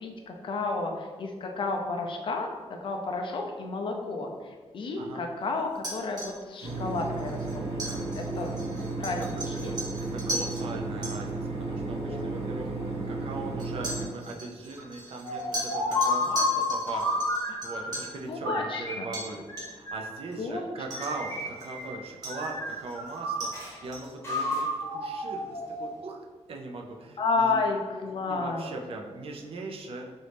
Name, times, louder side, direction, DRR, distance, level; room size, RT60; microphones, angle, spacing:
voice 1, 0.0-2.5 2.8-4.3 4.7-7.4 7.7-8.5 9.0-9.2 9.6-9.7 12.0-12.2 18.3-19.1 20.4-20.7 27.2-28.6, left 3 dB, 50° left, 2 dB, 0.4 m, -31 dB
sound 1, 5.7-10.7 11.0-11.1 12.2-12.3 13.6-18.2 19.1-19.3 19.6-19.9 20.3-20.4 20.9-21.8 22.2-24.2, right 1 dB, 35° right, 1.2 m, -38 dB
sound 2, 6.6-14.1, right 3 dB, 75° right, 0.9 m, -33 dB
voice 2, 9.0-9.4 10.0-12.7 13.1-19.4 19.7-23.5 23.8-27.6 28.2-30.1, right 3 dB, 60° right, 1 dB, 0.4 m, -40 dB
sound 3, 15.2-18.0 18.4-20.2 20.9-22.0 22.3-23.7 24.2-26.0, left 2 dB, 25° left, 0.8 m, -31 dB
3.0 x 2.6 x 3.2 m, 1.5 s
wide cardioid pair, 160°, 11 cm